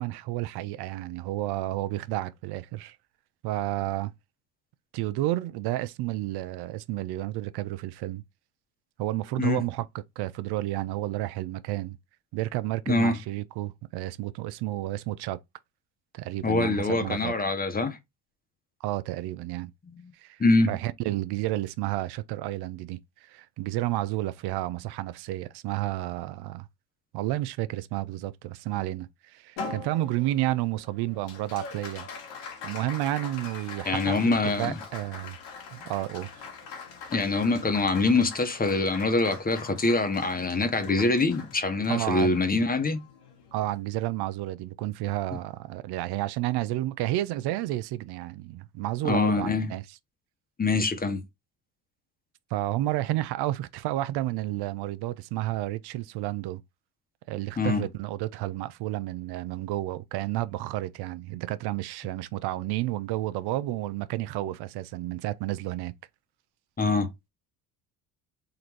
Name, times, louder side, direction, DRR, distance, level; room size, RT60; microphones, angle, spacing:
voice 1, 0.0-3.0 3.4-4.1 4.9-8.2 9.0-12.0 12.3-15.4 16.1-17.3 18.8-19.7 20.1-20.4 20.7-26.7 27.1-32.1 32.3-35.4 35.7-36.3 41.9-42.3 43.5-49.8 52.5-56.6 57.3-65.9, right 16 dB, 70° right, 0.5 m, -31 dB
voice 2, 12.9-13.2 16.4-18.0 19.8-20.0 20.4-20.7 33.9-34.8 37.1-43.0 49.0-49.7 50.6-51.2 57.6-57.8 66.8-67.1, left 3 dB, 20° left, 1.0 m, -24 dB
Applause, 29.6-44.2, left 4 dB, 80° left, 1.8 m, -43 dB
3.9 x 2.5 x 4.5 m
cardioid pair, 95°, 41 cm